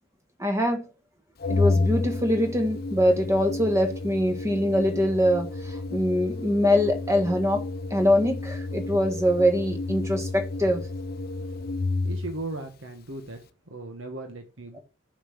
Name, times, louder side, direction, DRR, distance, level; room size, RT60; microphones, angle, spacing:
voice 1, 0.4-0.9 1.5-5.5 5.9-7.6 7.9-10.8, equal, 15° right, 1.4 m, -23 dB
Organ, 1.4-12.4, left 3 dB, 50° left, 0.7 m, -30 dB
voice 2, 12.0-13.4 13.7-14.8, right 2 dB, 85° right, 1.5 m, -37 dB
6.8 x 5.9 x 5.9 m
head